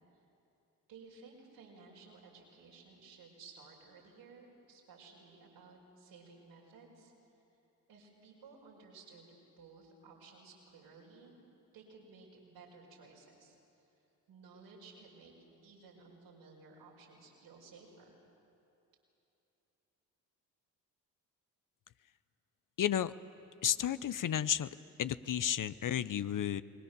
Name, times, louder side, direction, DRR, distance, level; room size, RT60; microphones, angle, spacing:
voice 1, 0.9-7.1 7.9-9.3 9.6-11.4 11.7-13.6 14.3-15.3 15.6-18.1, right 4 dB, 75° right, -2 dB, 5.4 m, -56 dB
voice 2, 22.8-23.1 23.6-24.7 25.0-26.6, left 10 dB, 45° left, 15 dB, 0.8 m, -32 dB
29.5 x 21.0 x 6.9 m, 2.9 s
hypercardioid pair, 45°, 43 cm